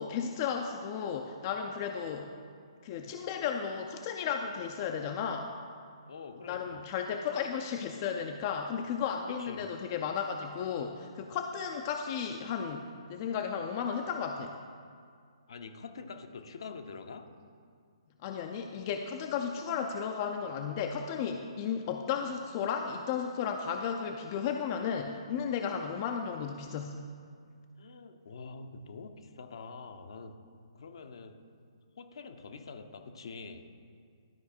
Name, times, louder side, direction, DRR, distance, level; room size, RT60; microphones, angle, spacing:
voice 1, 0.0-2.3 2.8-5.6 6.5-14.6 18.2-27.0, left 7 dB, 35° left, 4 dB, 0.5 m, -34 dB
voice 2, 6.1-6.8 9.3-9.7 15.5-17.3 27.8-30.4 30.7-31.4 32.0-33.6, left 4 dB, 60° left, 6 dB, 0.8 m, -45 dB
12.0 x 4.7 x 4.4 m, 2.1 s
figure-of-eight pair, 135°, 3 cm